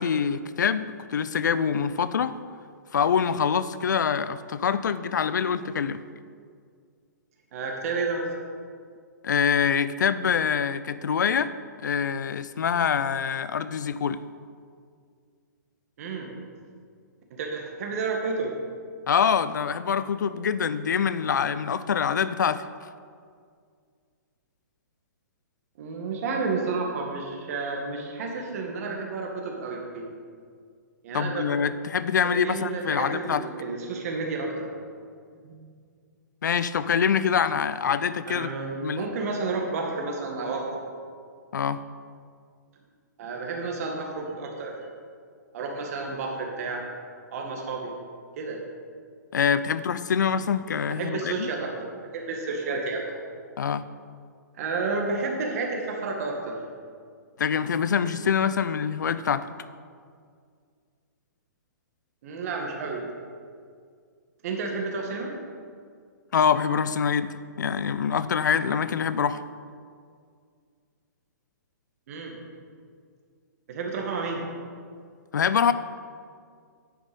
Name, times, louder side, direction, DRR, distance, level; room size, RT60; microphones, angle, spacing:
voice 1, 0.0-2.4 2.9-6.0 9.2-11.5 11.8-14.2 19.1-22.6 31.1-33.4 36.4-38.5 38.8-39.1 41.5-41.8 49.3-51.5 53.6-53.9 57.4-59.5 66.3-69.4 75.3-75.7, left 7 dB, 75° left, 14 dB, 0.5 m, -25 dB
voice 2, 7.5-8.3 16.0-16.3 17.3-18.5 25.8-30.0 31.0-31.4 32.2-34.7 35.4-35.6 38.3-40.8 43.2-44.7 45.5-46.9 47.3-47.9 48.4-48.6 50.9-53.1 54.6-56.6 62.2-63.1 64.4-65.3 72.1-72.4 73.7-74.4, right 4 dB, 50° right, 1 dB, 2.0 m, -31 dB
9.7 x 7.2 x 5.4 m, 2.1 s
hypercardioid pair, 135°, 10 cm